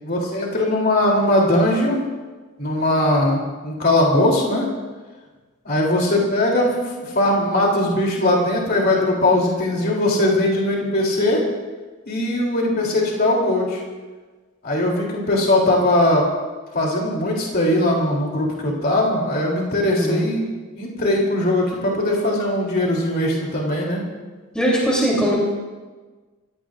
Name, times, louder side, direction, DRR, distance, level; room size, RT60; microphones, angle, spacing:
voice 1, 0.0-2.0 2.6-4.6 5.6-11.4 12.1-13.8 14.6-16.3 16.7-20.4 20.7-24.0, left 1 dB, 45° left, -2 dB, 3.1 m, -20 dB
voice 2, 24.5-25.3, equal, 5° left, -5 dB, 3.2 m, -20 dB
27.5 x 16.0 x 2.5 m, 1.3 s
head